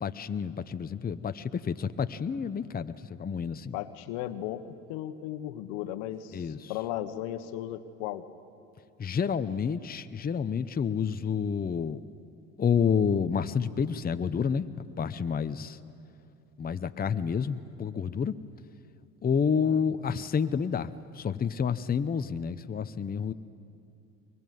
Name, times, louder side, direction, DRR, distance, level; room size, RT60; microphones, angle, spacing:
voice 1, 0.0-3.8 6.3-6.7 9.0-12.0 12.6-14.7 15.0-15.8 16.6-18.3 19.2-23.3, left 6 dB, 25° left, 10 dB, 0.9 m, -29 dB
voice 2, 3.7-4.6 4.9-8.3 19.5-20.2, left 12 dB, 80° left, 10 dB, 1.4 m, -36 dB
23.0 x 22.5 x 9.4 m, 2.6 s
supercardioid pair, 80°, 36 cm